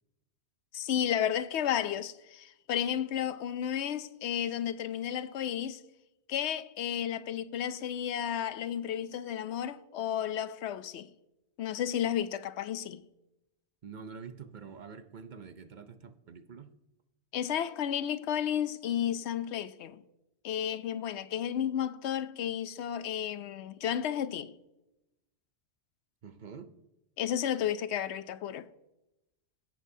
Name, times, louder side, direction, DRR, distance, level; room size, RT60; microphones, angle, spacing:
voice 1, 0.7-5.8 6.3-11.1 11.6-13.0 17.3-20.0 20.4-24.5 27.2-28.7, left 9 dB, 85° left, 0.9 m, -32 dB
voice 2, 13.8-16.7 26.2-26.7, right 6 dB, 50° right, 0.7 m, -46 dB
17.0 x 7.5 x 2.7 m
omnidirectional pair, 1.1 m